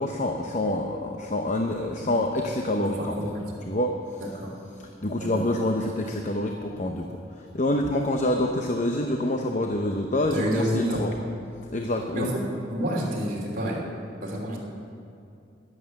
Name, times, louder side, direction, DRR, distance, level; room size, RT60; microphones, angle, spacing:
voice 1, 0.0-3.2 3.7-4.2 5.0-11.1 11.7-12.3, left 1 dB, 40° left, 3 dB, 0.7 m, -27 dB
voice 2, 2.7-3.4 4.2-4.5 5.2-5.4 10.3-11.0 12.1-12.3 12.7-13.8 14.2-14.6, equal, 45° right, -3 dB, 3.0 m, -29 dB
11.0 x 11.0 x 7.6 m, 2.6 s
head